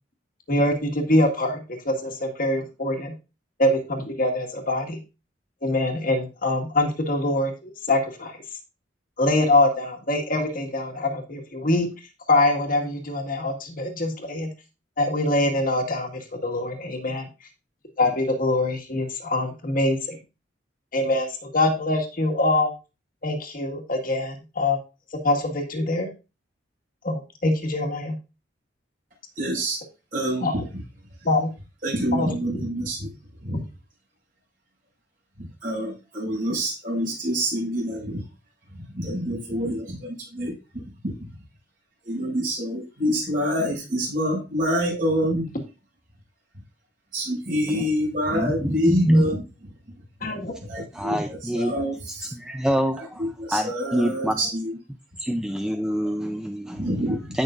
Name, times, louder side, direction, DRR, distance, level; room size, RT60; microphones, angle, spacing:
voice 1, 0.5-3.1 3.6-5.0 5.6-8.3 9.2-11.9 12.3-14.5 15.0-17.3 18.0-20.2 20.9-22.7 23.2-24.8 25.2-26.1 27.0-28.2 30.4-30.6 31.3-31.5 32.1-32.3 50.2-50.5, left 2 dB, 50° left, 2 dB, 1.9 m, -24 dB
voice 2, 29.4-29.8 30.1-30.6 31.8-33.1 33.4-33.6 35.4-38.2 38.9-40.5 41.0-41.1 42.0-45.5 47.1-49.4 50.7-52.3 52.9-54.7 56.7-57.3, equal, 45° right, -2 dB, 6.6 m, -26 dB
voice 3, 48.3-49.3 50.9-51.7 52.3-54.4 55.2-56.9 57.3-57.4, equal, 5° right, 5 dB, 0.5 m, -25 dB
16.0 x 6.0 x 2.6 m, 0.29 s
head